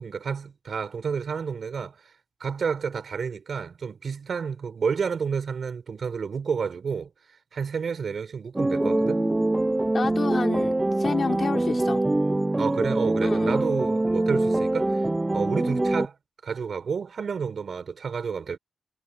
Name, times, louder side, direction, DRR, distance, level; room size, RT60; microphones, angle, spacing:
voice 1, 0.0-2.0 2.4-7.1 7.5-9.2 12.6-15.1 15.3-16.2 16.4-18.6, right 6 dB, 70° right, 6.2 m, -30 dB
sound 1, 8.6-16.1, right 2 dB, 15° right, 0.4 m, -24 dB
voice 2, 8.7-9.5 9.9-10.7 11.0-12.0 13.2-13.6, left 4 dB, 50° left, 4.4 m, -30 dB
wide cardioid pair, 150°, 0 cm